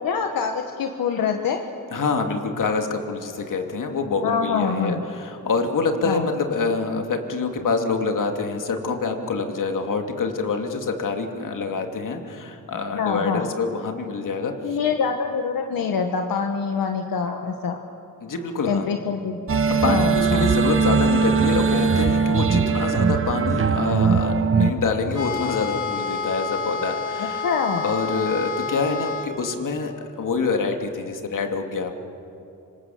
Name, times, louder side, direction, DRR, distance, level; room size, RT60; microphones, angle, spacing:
voice 1, 0.0-1.6 4.2-5.0 6.0-6.3 12.9-13.5 14.6-17.8 18.7-19.4 19.8-20.4 27.2-27.8, left 6 dB, 90° left, 4 dB, 1.5 m, -25 dB
voice 2, 1.9-14.8 18.2-18.9 19.8-27.5 27.8-31.9, left 4 dB, 65° left, 4 dB, 2.7 m, -26 dB
sound 1, 19.5-24.7, right 5 dB, 40° right, 1.5 m, -20 dB
sound 2, 25.1-29.3, left 4 dB, 45° left, 6.0 m, -29 dB
26.5 x 25.5 x 7.9 m, 2.7 s
cardioid pair, 105°, 34 cm